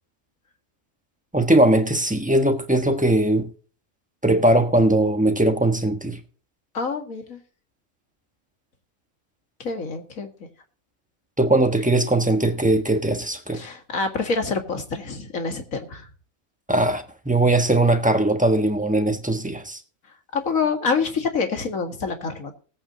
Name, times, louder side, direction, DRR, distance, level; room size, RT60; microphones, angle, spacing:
voice 1, 1.3-3.5 4.2-6.2 11.4-13.6 16.7-19.8, right 1 dB, 5° right, 1.3 m, -20 dB
voice 2, 6.7-7.4 9.6-10.3 13.5-16.1 20.3-22.6, left 4 dB, 85° left, 2.3 m, -26 dB
20.0 x 8.6 x 2.8 m
omnidirectional pair, 1.4 m